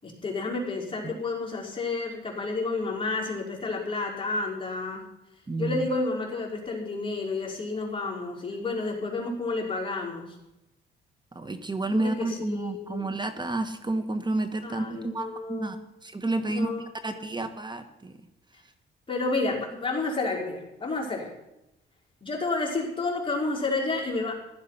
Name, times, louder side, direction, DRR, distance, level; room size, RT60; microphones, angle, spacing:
voice 1, 0.0-5.0 5.6-10.3 11.9-13.1 14.6-15.9 16.5-16.9 17.2-17.3 19.1-21.3 22.2-24.3, left 3 dB, 25° left, -2 dB, 5.2 m, -30 dB
voice 2, 5.5-5.9 11.3-15.8 16.0-18.1, right 2 dB, 20° right, 9 dB, 1.4 m, -30 dB
15.5 x 11.5 x 5.9 m, 0.91 s
cardioid pair, 90°, 20 cm